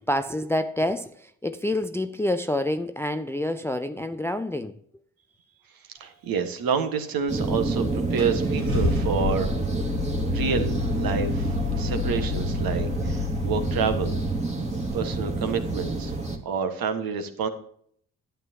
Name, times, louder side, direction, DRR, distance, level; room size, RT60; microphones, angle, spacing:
voice 1, 0.1-4.8, left 1 dB, 5° left, 0.5 m, -27 dB
voice 2, 6.0-9.5 10.3-14.2 14.9-16.1 16.4-17.5, right 6 dB, 50° right, 1.6 m, -28 dB
sound 1, 7.3-16.4, right 2 dB, 15° right, 2.2 m, -28 dB
Car / Engine starting, 7.5-7.6 8.2-14.4, left 3 dB, 75° right, 3.4 m, -29 dB
12.5 x 9.1 x 2.9 m
figure-of-eight pair, 45°, 44 cm